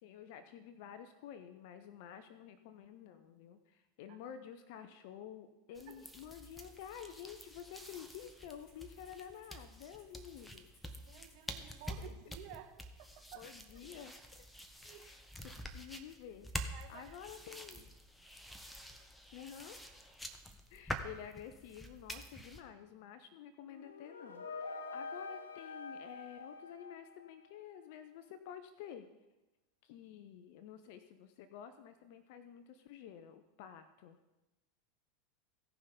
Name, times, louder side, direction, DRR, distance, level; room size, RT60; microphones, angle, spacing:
voice 1, 0.0-10.7 12.0-12.1 13.3-14.1 14.8-15.2 15.4-17.9 19.3-19.8 20.7-29.1 29.8-34.2, left 9 dB, 60° left, 10 dB, 0.7 m, -51 dB
sound 1, 5.7-22.6, equal, 5° left, 1.2 m, -48 dB
Rattle (instrument), 6.1-12.1, left 2 dB, 35° left, 3.7 m, -68 dB
voice 2, 10.9-13.5 14.8-15.1 16.7-17.2 17.5-17.8, right 12 dB, 55° right, 5 dB, 1.4 m, -54 dB
sound 2, 23.6-27.6, left 4 dB, 80° left, 1.0 m, -46 dB
16.5 x 5.7 x 5.2 m, 1.0 s
hypercardioid pair, 90°, 0 cm